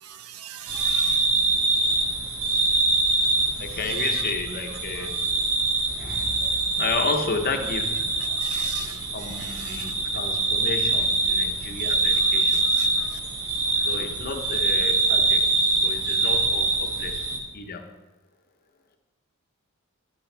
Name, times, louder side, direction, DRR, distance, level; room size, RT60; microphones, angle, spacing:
voice 1, 0.0-1.2 3.9-4.1 5.0-5.1 6.4-6.6 8.4-9.9 12.8-13.2, right 9 dB, 90° right, 0.6 m, -40 dB
sound 1, 0.7-17.4, right 3 dB, 65° right, 1.4 m, -24 dB
voice 2, 2.4-5.2 5.9-6.5 6.8-8.1 9.1-12.7 13.7-15.5 15.8-17.3 17.5-17.9, left 4 dB, 45° left, 0.9 m, -32 dB
11.0 x 8.8 x 3.3 m
head